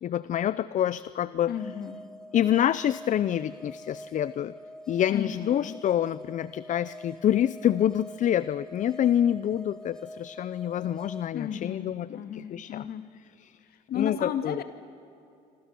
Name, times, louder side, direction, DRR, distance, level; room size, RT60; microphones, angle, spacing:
voice 1, 0.0-1.5 2.3-4.5 4.9-12.1 12.3-12.8 13.4-13.5 13.9-14.6, left 10 dB, 50° left, 16 dB, 0.6 m, -27 dB
voice 2, 1.5-2.0 5.1-5.8 11.3-13.1 13.7-14.6, left 8 dB, 65° left, 9 dB, 2.2 m, -34 dB
sound 1, 1.5-11.3, left 1 dB, 5° left, 0.6 m, -46 dB
26.5 x 26.5 x 6.8 m, 2.6 s
cardioid pair, 110°, 17 cm